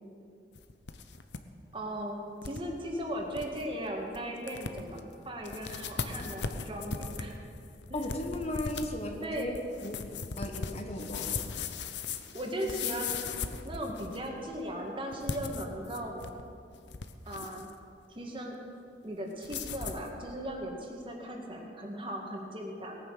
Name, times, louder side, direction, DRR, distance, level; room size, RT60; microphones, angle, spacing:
sound 1, 0.6-1.4 1.7-1.8 2.4-2.6 3.0-3.1 3.3-3.6 4.1-4.2 4.5-5.0 5.4-14.3 15.1-16.4 16.7-17.7 19.4-20.1, left 5 dB, 85° left, 0.8 m, -38 dB
voice 1, 1.7-7.4 7.9-8.1 9.2-9.5 12.3-13.3 13.6-16.3 17.3-17.7 18.1-18.6 19.0-23.0, equal, 30° right, 1 dB, 2.0 m, -37 dB
voice 2, 7.9-9.5 9.8-11.6, left 1 dB, 40° left, 4 dB, 1.2 m, -36 dB
18.5 x 9.6 x 6.5 m, 2.5 s
head